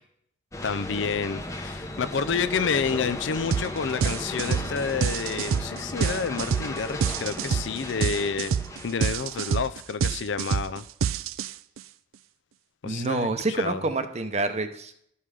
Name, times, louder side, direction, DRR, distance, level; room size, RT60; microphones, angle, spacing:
sound 1, 0.5-9.7, left 1 dB, 15° left, 0.8 m, -36 dB
voice 1, 0.6-8.5 8.8-10.8 12.8-13.3 13.6-13.9, left 5 dB, 60° left, 13 dB, 0.5 m, -29 dB
sound 2, 3.5-3.7 4.0-11.8, right 7 dB, 85° right, 0.4 m, -27 dB
voice 2, 12.8-15.0, right 2 dB, 30° right, 9 dB, 0.7 m, -28 dB
12.0 x 5.7 x 4.9 m, 0.69 s
head